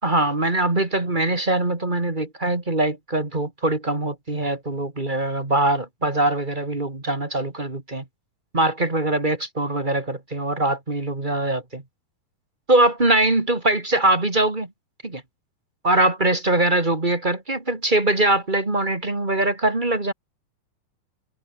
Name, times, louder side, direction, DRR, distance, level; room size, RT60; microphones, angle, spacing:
voice 1, 0.0-8.0 8.5-11.8 12.7-14.7 15.0-15.2 15.8-20.1, right 2 dB, 15° right, 1.9 m, -22 dB
omnidirectional pair, 4.3 m